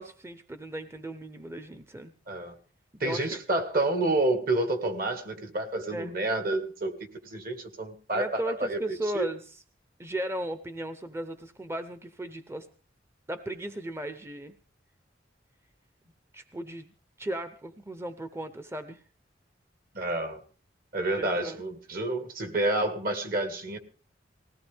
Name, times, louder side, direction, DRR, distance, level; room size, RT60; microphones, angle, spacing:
voice 1, 0.0-2.1 3.0-3.4 5.9-6.1 8.1-9.6 10.0-12.7 13.3-14.5 16.3-19.0 21.2-21.6, right 1 dB, 15° right, 10 dB, 0.7 m, -36 dB
voice 2, 3.0-7.0 7.2-8.8 9.1-9.3 19.9-20.4 20.9-23.8, right 2 dB, 55° right, 7 dB, 2.1 m, -29 dB
20.0 x 17.0 x 3.5 m, 0.39 s
head